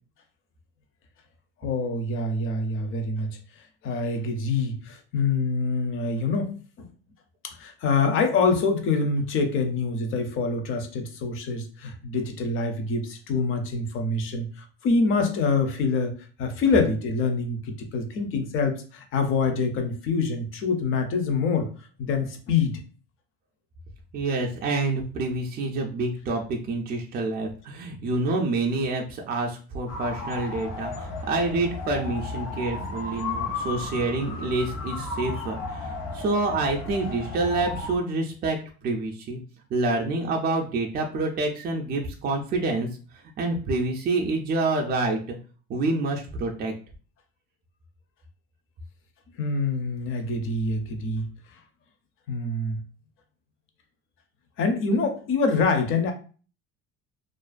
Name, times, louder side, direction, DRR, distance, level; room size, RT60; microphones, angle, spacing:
voice 1, 1.6-3.4 3.8-6.5 6.8-6.9 7.4-21.7 22.0-22.8 49.4-51.3 52.3-52.8 54.6-56.1, left 4 dB, 45° left, 7 dB, 0.5 m, -25 dB
voice 2, 24.1-38.6 38.8-39.4 39.7-42.9 43.4-45.4 45.7-46.7, right 2 dB, 30° right, 1 dB, 0.4 m, -27 dB
sound 1, 29.9-38.0, left 3 dB, 80° left, 1.0 m, -34 dB
2.4 x 2.1 x 2.4 m, 0.38 s
cardioid pair, 130°, 30 cm